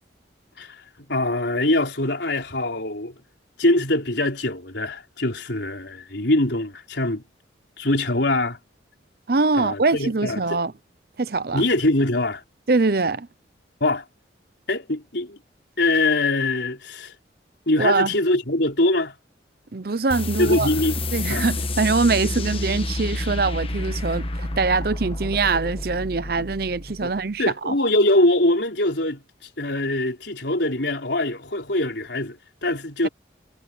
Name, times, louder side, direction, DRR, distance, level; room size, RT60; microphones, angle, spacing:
voice 1, 0.6-3.2 3.6-7.2 7.8-8.6 9.5-10.6 11.5-12.4 13.8-14.0 14.7-15.4 15.8-17.1 17.7-19.2 20.4-21.0 21.3-21.5 27.0-33.1, left 2 dB, 70° left, 4.3 m, -23 dB
voice 2, 9.3-10.7 11.2-11.6 12.7-13.3 17.8-18.1 19.7-20.7 21.1-27.7, right 3 dB, 55° right, 0.7 m, -23 dB
sound 1, 20.1-27.2, left 2 dB, 30° left, 1.3 m, -29 dB
head